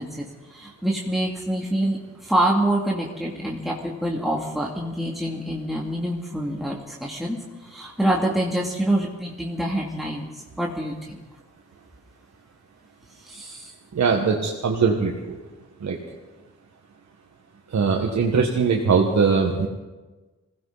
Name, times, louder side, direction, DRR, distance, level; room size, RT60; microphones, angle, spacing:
voice 1, 0.0-10.3 10.6-11.2 13.2-13.7, right 1 dB, ahead, -3 dB, 2.7 m, -26 dB
voice 2, 13.9-15.4 15.8-16.0 17.7-19.7, right 5 dB, 65° right, 0 dB, 1.6 m, -21 dB
21.0 x 16.5 x 4.1 m, 1.2 s
supercardioid pair, 45°, 29 cm